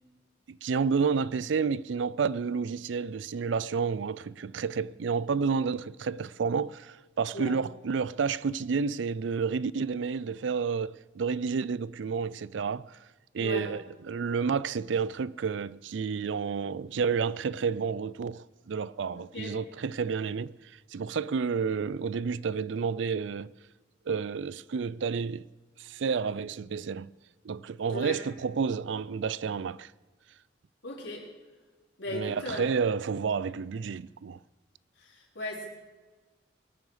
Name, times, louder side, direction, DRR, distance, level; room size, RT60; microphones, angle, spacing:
voice 1, 0.5-13.0 13.3-20.5 20.9-23.5 24.1-25.5 25.8-27.1 27.4-29.9 32.1-34.4, right 5 dB, 75° right, 0.4 m, -30 dB
voice 2, 13.4-13.7 19.2-19.6 27.9-28.2 30.8-31.3 32.0-32.8 35.0-35.7, left 1 dB, 70° left, 4.7 m, -37 dB
23.0 x 9.4 x 5.0 m
head